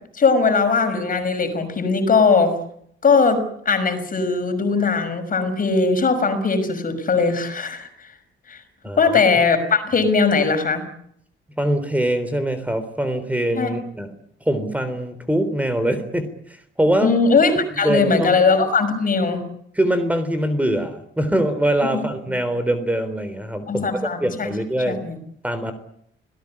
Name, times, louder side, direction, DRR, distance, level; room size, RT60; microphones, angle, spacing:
voice 1, 0.1-2.5 3.0-8.1 8.5-8.6 9.0-10.8 13.6-13.7 17.0-19.4 23.7-24.5 24.9-25.2, left 4 dB, 45° left, 8 dB, 5.9 m, -19 dB
voice 2, 8.8-9.2 11.6-14.1 14.4-17.1 17.8-18.4 19.7-25.0 25.4-25.7, right 1 dB, 5° right, 11 dB, 3.7 m, -23 dB
26.0 x 18.5 x 9.8 m, 0.68 s
cardioid pair, 90°, 20 cm